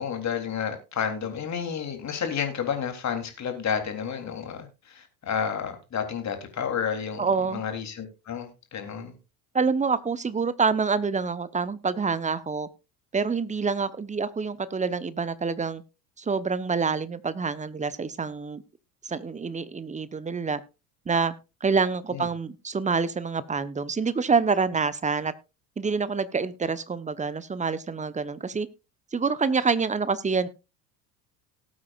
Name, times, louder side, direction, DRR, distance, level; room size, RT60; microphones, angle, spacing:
voice 1, 0.0-9.2 22.1-22.3, left 7 dB, 35° left, 3.5 m, -31 dB
voice 2, 7.2-7.6 9.5-12.7 13.1-15.8 16.2-18.6 19.0-20.6 21.1-21.3 21.6-25.3 25.8-28.7 29.1-30.5, right 5 dB, 15° right, 1.0 m, -26 dB
18.5 x 8.7 x 2.5 m
hypercardioid pair, 70°, 48 cm